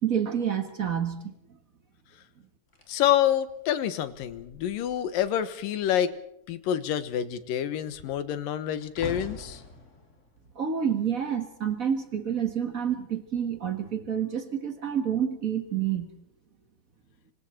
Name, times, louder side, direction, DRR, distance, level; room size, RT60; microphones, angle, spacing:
voice 1, 0.0-1.3 10.5-16.1, right 8 dB, 75° right, 7 dB, 0.7 m, -28 dB
sound 1, 2.7-5.5 5.8-6.1 6.4-11.8 12.5-12.8, left 2 dB, 20° left, 2.8 m, -46 dB
voice 2, 2.9-6.1 6.5-9.6, left 10 dB, 75° left, 12 dB, 2.9 m, -27 dB
25.5 x 25.5 x 4.4 m, 0.77 s
omnidirectional pair, 4.1 m